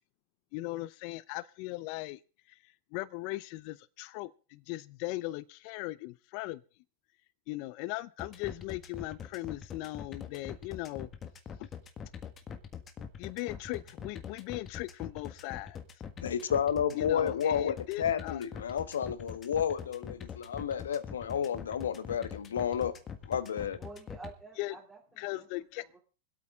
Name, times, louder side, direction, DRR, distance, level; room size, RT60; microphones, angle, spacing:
voice 1, 0.5-2.2 2.5-2.6 2.9-6.6 7.5-11.1 11.6-11.7 13.2-15.8 16.9-18.4 24.6-24.7 25.2-25.8, left 19 dB, 55° left, 0.6 m, -38 dB
sound 1, 8.2-24.3, left 7 dB, 25° left, 1.6 m, -43 dB
voice 2, 16.2-23.0 23.3-23.8, left 8 dB, 90° left, 1.1 m, -31 dB
voice 3, 23.7-25.5 25.8-26.0, right 3 dB, 10° right, 3.0 m, -49 dB
25.0 x 8.6 x 3.6 m
hypercardioid pair, 120°, 0 cm